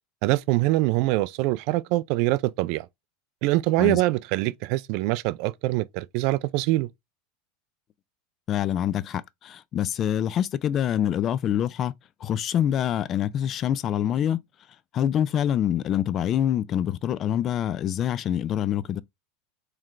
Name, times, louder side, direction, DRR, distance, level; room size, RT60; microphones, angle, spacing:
voice 1, 0.2-2.9 3.4-6.9, right 18 dB, 60° right, 0.3 m, -24 dB
voice 2, 8.5-11.9 12.2-14.4 14.9-19.0, left 10 dB, 35° left, 0.3 m, -25 dB
3.7 x 3.2 x 3.2 m
supercardioid pair, 140°, 0 cm